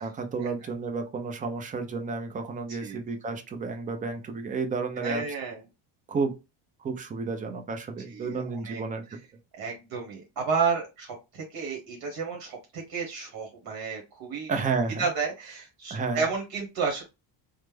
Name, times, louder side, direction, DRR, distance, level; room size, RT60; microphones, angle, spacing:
voice 1, 0.0-5.2 6.1-6.3 6.8-9.2 14.5-15.1 15.9-16.2, right 4 dB, 20° right, 5 dB, 0.4 m, -31 dB
voice 2, 2.7-3.0 5.0-5.6 8.1-8.8 9.6-14.5 15.0-17.0, right 5 dB, 55° right, 1 dB, 1.2 m, -31 dB
3.1 x 2.1 x 3.3 m, 0.26 s
cardioid pair, 135°, 47 cm